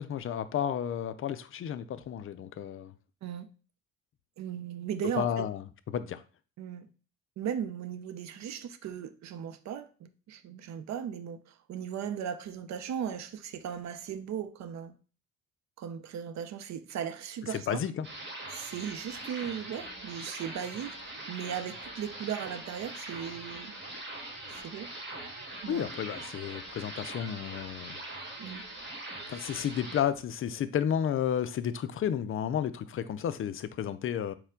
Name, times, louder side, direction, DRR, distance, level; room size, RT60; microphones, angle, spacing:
voice 1, 0.0-2.9 5.2-6.2 17.5-18.1 25.7-28.0 29.3-34.3, left 9 dB, 40° left, 0.4 m, -32 dB
voice 2, 4.4-5.5 6.6-6.9 7.4-14.9 15.8-17.8 18.5-23.8 24.5-24.9 25.6-25.9 28.4-28.7, right 8 dB, 50° right, 0.6 m, -37 dB
sound 1, 18.0-30.0, right 1 dB, 30° right, 1.4 m, -42 dB
4.2 x 2.2 x 3.6 m
supercardioid pair, 65°, 35 cm